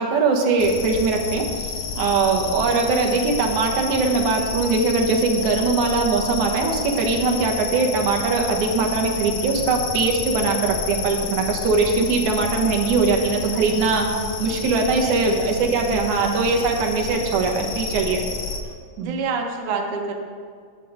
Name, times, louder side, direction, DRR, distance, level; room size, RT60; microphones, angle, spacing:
voice 1, 0.0-14.1 14.4-18.2 19.0-19.1, right 4 dB, 80° right, 1 dB, 2.6 m, -21 dB
sound 1, 0.6-18.6, left 5 dB, 90° left, 2.4 m, -30 dB
voice 2, 14.9-16.0 19.0-20.1, right 4 dB, 60° right, 2 dB, 1.7 m, -28 dB
11.0 x 8.3 x 5.1 m, 2.1 s
omnidirectional pair, 3.3 m